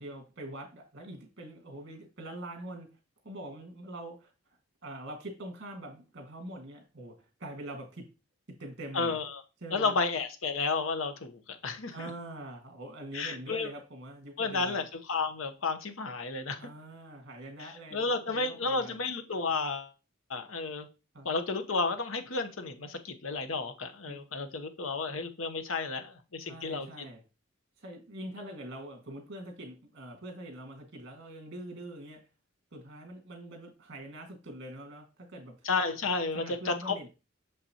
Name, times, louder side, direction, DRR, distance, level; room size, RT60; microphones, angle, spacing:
voice 1, 0.0-2.9 3.2-4.3 4.8-8.0 8.6-9.2 9.6-9.9 11.9-14.8 16.6-19.0 21.1-21.3 24.1-24.2 26.4-27.2 27.8-32.2 32.7-35.6 36.3-37.1, right 1 dB, 60° right, 1.9 m, -44 dB
voice 2, 8.9-9.4 9.7-12.1 13.1-13.7 14.4-14.8 15.1-16.6 17.6-19.9 20.3-20.9 21.2-27.0 35.6-37.1, left 4 dB, 75° left, 0.9 m, -32 dB
6.7 x 5.5 x 2.9 m
head